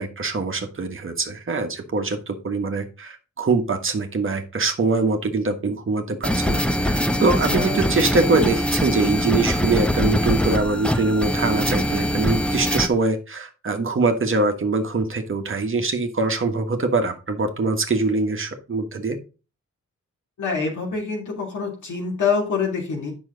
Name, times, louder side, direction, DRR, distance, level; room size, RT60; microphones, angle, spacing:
voice 1, 0.0-19.2, right 3 dB, 40° right, 4 dB, 1.4 m, -23 dB
sound 1, 6.2-12.9, equal, 5° left, 0.9 m, -23 dB
voice 2, 20.4-23.1, left 5 dB, 80° left, -2 dB, 3.0 m, -25 dB
8.8 x 6.2 x 3.9 m, 0.33 s
wide cardioid pair, 125°, 30 cm